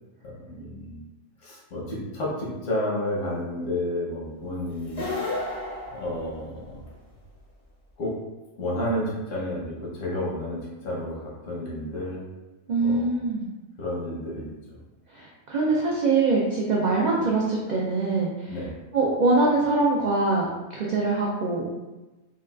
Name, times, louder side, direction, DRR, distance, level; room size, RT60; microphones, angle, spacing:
voice 1, 0.2-1.0 1.4-5.1 5.9-6.8 8.0-8.1 8.6-12.2 12.8-13.1 13.8-14.5 18.5-18.7, left 1 dB, 75° left, -4 dB, 1.2 m, -31 dB
sound 1, 4.8-6.9, left 2 dB, 45° left, 0.6 m, -32 dB
voice 2, 12.7-13.5 15.1-18.6 18.9-21.7, right 3 dB, 90° right, -4 dB, 0.4 m, -23 dB
3.8 x 2.3 x 2.3 m, 1.1 s
omnidirectional pair, 1.3 m